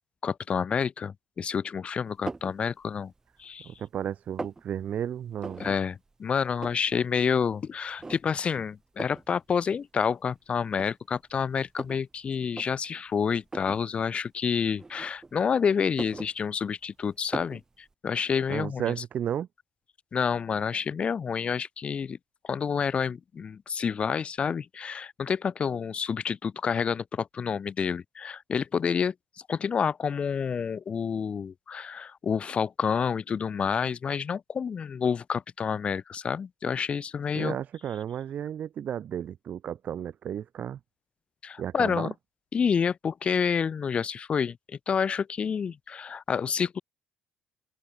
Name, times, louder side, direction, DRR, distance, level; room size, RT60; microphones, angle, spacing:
voice 1, 0.2-3.1 3.4-3.7 5.6-17.6 18.0-18.9 20.1-22.2 22.5-29.1 29.5-37.5 41.4-42.1 42.5-46.8, left 6 dB, 35° left, 1.0 m, -29 dB
sound 1, 2.3-2.6 3.1-3.8 4.0-4.6 5.4-5.8 6.1-6.2 6.4-7.0 7.4-7.5 8.0-8.5 9.0-9.3 10.1-10.2 10.7-12.1 12.5-12.7 13.5-13.8 14.8-15.5 15.8-16.8 17.3-17.6, right 3 dB, 15° right, 0.7 m, -39 dB
voice 2, 3.6-5.7 18.5-19.5 37.3-40.8 41.6-42.1, right 9 dB, 55° right, 1.8 m, -33 dB
open air
cardioid pair, 115°, 3 cm